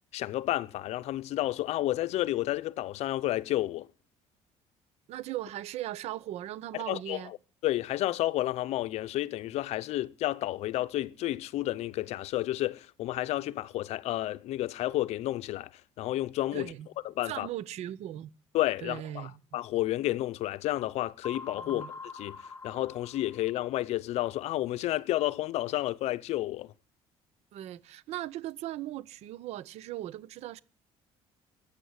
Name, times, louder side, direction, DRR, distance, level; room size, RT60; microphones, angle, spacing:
voice 1, 0.1-3.9 6.7-7.4 7.6-16.7 17.0-17.5 18.5-26.7, left 15 dB, 65° left, 0.7 m, -31 dB
voice 2, 5.1-7.3 16.5-16.9 17.2-18.3 18.8-19.4 21.6-21.9 27.5-30.6, right 13 dB, 65° right, 0.9 m, -38 dB
sound 1, 21.2-23.8, left 4 dB, 25° left, 2.1 m, -44 dB
14.0 x 8.7 x 9.6 m
cardioid pair, 145°, 12 cm